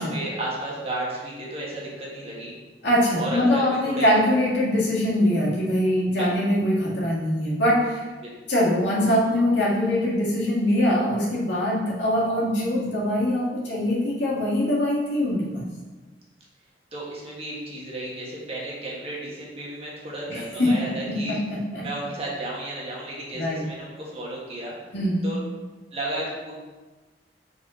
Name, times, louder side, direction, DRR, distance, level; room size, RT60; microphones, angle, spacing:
voice 1, 0.0-2.5 3.2-4.1 6.2-6.3 8.2-8.3 16.9-21.4 21.8-24.7 25.2-25.4 25.9-26.5, right 1 dB, 35° right, -5 dB, 1.5 m, -33 dB
voice 2, 2.8-8.1 8.5-15.6 20.3-21.9 23.3-23.7 24.9-25.3, left 1 dB, 75° left, -6 dB, 1.8 m, -23 dB
4.8 x 4.2 x 4.8 m, 1.2 s
head